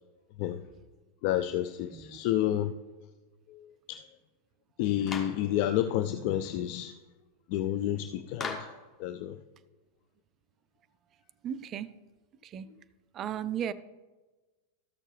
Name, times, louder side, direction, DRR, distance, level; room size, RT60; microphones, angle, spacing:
voice 1, 1.2-2.7 3.5-4.0 4.8-6.9 7.5-8.6 9.0-9.4, left 12 dB, 45° left, 9 dB, 0.3 m, -30 dB
Clapping, 5.1-5.4 8.4-8.8, left 4 dB, 25° left, 1.3 m, -37 dB
voice 2, 11.4-11.9 12.4-12.7 13.1-13.7, right 9 dB, 30° right, 16 dB, 0.4 m, -35 dB
13.5 x 6.5 x 3.2 m, 1.2 s
figure-of-eight pair, 90°, 0 cm